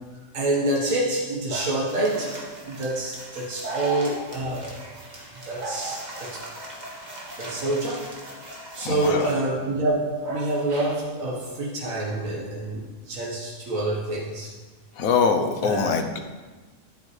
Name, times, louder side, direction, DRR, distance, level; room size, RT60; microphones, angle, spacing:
voice 1, 0.1-5.0 5.4-6.4 7.4-8.4 8.7-14.5 15.6-15.9, right 2 dB, 75° right, -4 dB, 1.8 m, -27 dB
sound 1, 1.9-9.3, right 1 dB, 35° right, 1.6 m, -41 dB
voice 2, 8.8-9.2 15.0-16.2, left 5 dB, 90° left, 6 dB, 1.3 m, -23 dB
10.5 x 8.4 x 3.2 m, 1.3 s
omnidirectional pair, 1.4 m